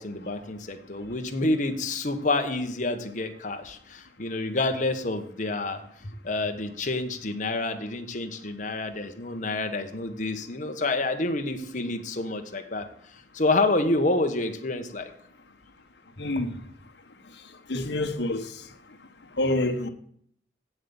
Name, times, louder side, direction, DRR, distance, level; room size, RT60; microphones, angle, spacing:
voice 1, 0.0-5.8 6.2-12.9 13.3-15.1, left 2 dB, 45° left, 1.2 m, -28 dB
voice 2, 16.2-16.5 17.7-18.4 19.4-19.9, left 1 dB, 70° left, 1.2 m, -26 dB
8.1 x 7.8 x 7.0 m
head